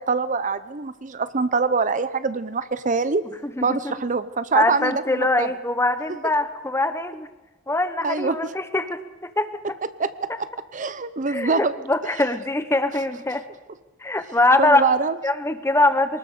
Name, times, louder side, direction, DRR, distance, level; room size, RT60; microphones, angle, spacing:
voice 1, 0.0-3.2 3.6-5.5 8.0-8.4 10.0-10.5 10.7-11.7 14.6-15.2, right 4 dB, 40° right, 13 dB, 0.7 m, -24 dB
voice 2, 3.4-3.9 4.5-7.3 7.7-9.8 10.3-10.4 11.3-13.5 14.0-14.8 15.2-16.2, left 2 dB, 15° left, 10 dB, 1.1 m, -23 dB
23.5 x 19.5 x 6.7 m, 1.2 s
head